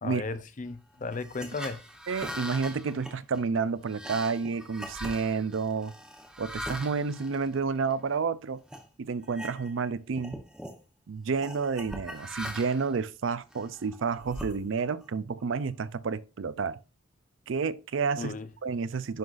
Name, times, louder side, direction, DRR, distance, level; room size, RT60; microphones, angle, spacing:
voice 1, 0.0-1.8 18.2-18.5, left 3 dB, 40° left, 0.5 m, -35 dB
sound 1, 1.1-8.2 8.7-8.9 9.2-9.9 10.1-10.8 11.4-12.9 13.5-15.0, equal, 5° right, 0.9 m, -41 dB
voice 2, 2.1-5.9 6.4-8.6 9.0-10.4 11.1-16.8 17.5-18.3 18.6-19.2, right 5 dB, 70° right, 0.4 m, -30 dB
10.5 x 3.9 x 2.5 m
head